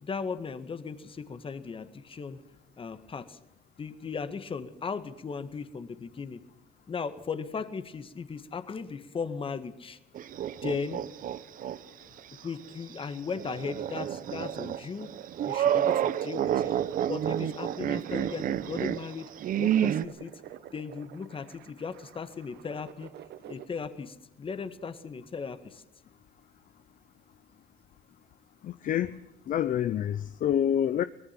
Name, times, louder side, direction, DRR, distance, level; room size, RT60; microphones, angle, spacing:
voice 1, 0.0-2.4 2.8-3.4 3.8-6.4 6.9-10.0 10.6-11.0 12.4-15.1 15.4-16.8 17.1-19.3 19.6-20.3 20.7-23.1 23.5-25.8, left 5 dB, 30° left, 1.8 m, -37 dB
sound 1, 10.1-11.8 12.2-12.3 13.3-20.1, right 10 dB, 55° right, 0.9 m, -29 dB
sound 2, 15.6-23.7, right 11 dB, 75° right, 1.0 m, -41 dB
voice 2, 28.6-29.2 29.5-31.0, left 10 dB, 55° left, 0.7 m, -27 dB
23.5 x 19.0 x 6.0 m
cardioid pair, 110°, 17 cm